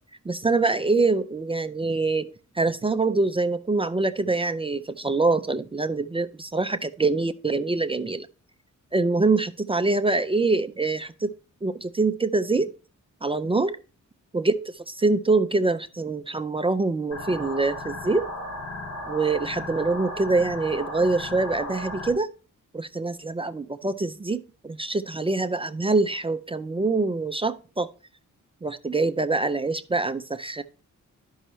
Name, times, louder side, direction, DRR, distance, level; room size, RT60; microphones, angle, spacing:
voice 1, 0.3-8.3 8.9-11.3 11.6-12.7 13.2-13.8 14.3-18.3 19.1-22.3 22.7-27.9 28.6-30.6, right 3 dB, 20° right, 10 dB, 0.3 m, -25 dB
sound 1, 17.1-22.1, left 1 dB, 60° left, 2.9 m, -35 dB
12.5 x 5.5 x 3.0 m, 0.36 s
wide cardioid pair, 170°, 31 cm